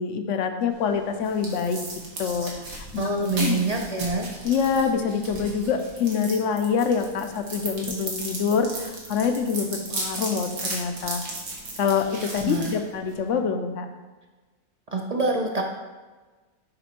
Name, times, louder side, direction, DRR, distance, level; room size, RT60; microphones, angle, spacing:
voice 1, 0.0-1.8 2.2-3.0 3.4-3.6 4.4-11.3 11.8-13.9, left 6 dB, 65° left, 7 dB, 1.0 m, -25 dB
sound 1, 0.7-13.4, right 2 dB, 80° right, 1.8 m, -36 dB
voice 2, 3.0-4.3 12.4-12.7 14.9-15.6, right 3 dB, 40° right, 1 dB, 0.6 m, -25 dB
6.7 x 5.2 x 4.3 m, 1.3 s
omnidirectional pair, 1.4 m